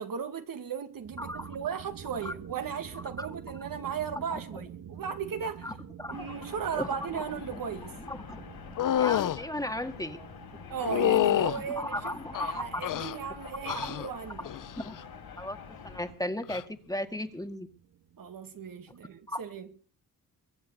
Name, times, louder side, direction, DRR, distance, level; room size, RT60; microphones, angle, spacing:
voice 1, 0.0-5.8 6.1-7.9 10.7-14.5 18.2-19.7, right 7 dB, 60° right, 2.0 m, -36 dB
sound 1, 0.9-19.7, right 9 dB, 80° right, 2.2 m, -49 dB
voice 2, 1.2-1.6 2.2-2.3 3.2-3.3 4.3-4.4 5.6-5.7 6.0-6.3 6.7-6.9 7.1-7.2 8.1-8.5 9.0-10.2 11.4-12.8 13.7-14.0 14.8-15.0 15.4-15.6 15.8-17.7 19.3-19.4, left 1 dB, 10° left, 2.0 m, -35 dB
sound 2, 6.1-16.1, left 6 dB, 75° left, 5.8 m, -47 dB
sound 3, 8.8-9.4 10.8-11.6 12.3-13.2 13.7-14.1 14.4-14.9 16.4-16.6, left 11 dB, 55° left, 0.7 m, -27 dB
23.0 x 7.7 x 8.1 m
cardioid pair, 65°, 37 cm